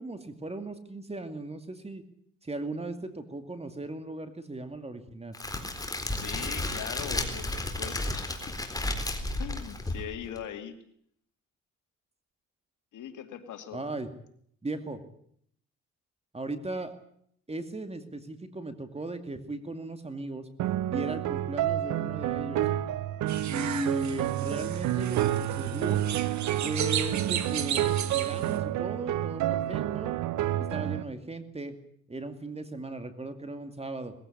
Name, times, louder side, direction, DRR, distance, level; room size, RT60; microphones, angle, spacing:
voice 1, 0.0-2.0 2.4-5.3 13.7-14.1 14.6-15.0 16.3-16.9 17.5-20.5 20.9-22.6 23.4-26.0 26.6-30.1 30.6-31.8 32.1-34.1, right 2 dB, 20° right, 8 dB, 2.5 m, -37 dB
Crackle, 5.3-10.4, left 1 dB, 10° left, 3.9 m, -33 dB
voice 2, 6.1-8.6 9.4-10.8 12.9-13.8, left 9 dB, 80° left, 7 dB, 2.4 m, -41 dB
sound 1, 20.6-31.0, right 13 dB, 85° right, 0.8 m, -29 dB
sound 2, 23.3-28.6, right 9 dB, 70° right, 1.9 m, -35 dB
21.0 x 16.0 x 9.9 m, 0.66 s
cardioid pair, 90°, 30 cm